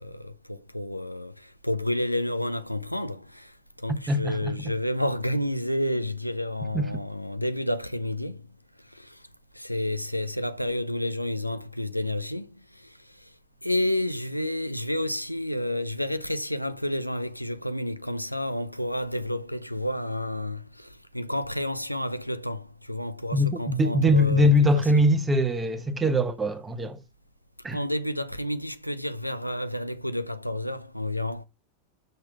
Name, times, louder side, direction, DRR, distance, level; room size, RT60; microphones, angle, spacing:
voice 1, 0.0-3.5 3.8-8.4 9.0-9.1 9.6-12.5 13.6-20.9 21.1-25.1 27.7-31.4, left 1 dB, 90° left, 0.7 m, -30 dB
voice 2, 4.1-4.6 6.7-6.9 23.3-27.0 27.6-27.8, left 1 dB, 15° right, 1.1 m, -22 dB
6.6 x 6.1 x 4.7 m
figure-of-eight pair, 90°, 0 cm